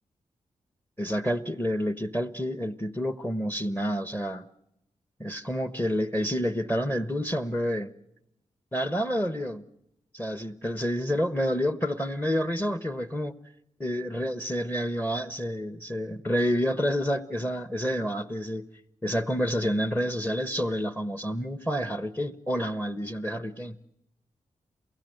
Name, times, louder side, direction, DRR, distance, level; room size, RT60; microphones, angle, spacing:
voice 1, 1.0-4.4 5.2-7.9 8.7-9.7 10.1-13.3 13.8-18.7 19.0-23.8, equal, 15° left, 1.2 m, -29 dB
28.5 x 16.0 x 7.9 m
supercardioid pair, 40°, 14 cm